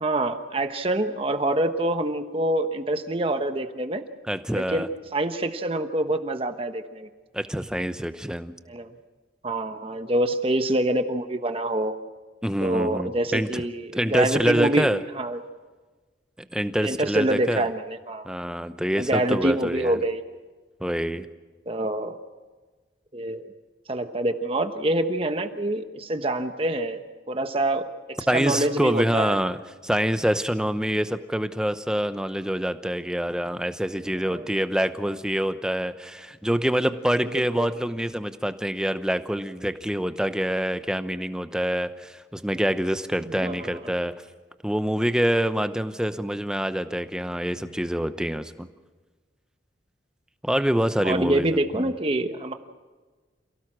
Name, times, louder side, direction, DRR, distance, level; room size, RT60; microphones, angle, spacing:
voice 1, 0.0-4.0 4.5-7.1 8.7-8.9 9.4-11.9 12.6-14.9 15.2-15.4 16.8-18.3 19.0-20.2 21.7-22.2 23.1-23.5 23.9-27.0 27.3-29.4 34.3-34.5 37.3-37.7 43.2-43.7 51.0-52.5, right 1 dB, 30° right, 8 dB, 1.1 m, -26 dB
voice 2, 4.3-4.9 7.3-8.5 12.4-13.6 13.9-15.0 16.5-17.7 18.2-20.0 20.8-21.3 28.3-44.2 44.6-48.7 50.4-51.5 51.7-51.9, equal, 5° right, 10 dB, 0.8 m, -26 dB
28.0 x 17.5 x 6.2 m, 1.3 s
head